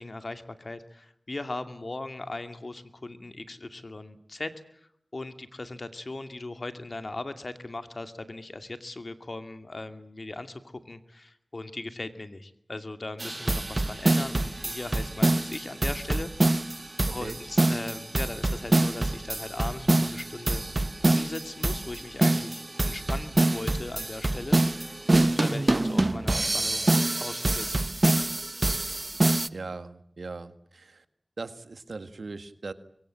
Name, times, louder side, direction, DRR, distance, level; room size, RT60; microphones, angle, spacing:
voice 1, 0.0-16.3 16.7-20.6 21.0-26.9 27.2-27.8, left 2 dB, 55° left, 9 dB, 2.4 m, -39 dB
sound 1, 13.2-29.5, right 2 dB, 45° right, 1.0 m, -25 dB
voice 2, 17.1-17.4 29.5-31.0 31.4-32.7, right 3 dB, 80° right, 11 dB, 1.6 m, -39 dB
25.0 x 23.5 x 8.8 m, 0.70 s
cardioid pair, 40°, 0 cm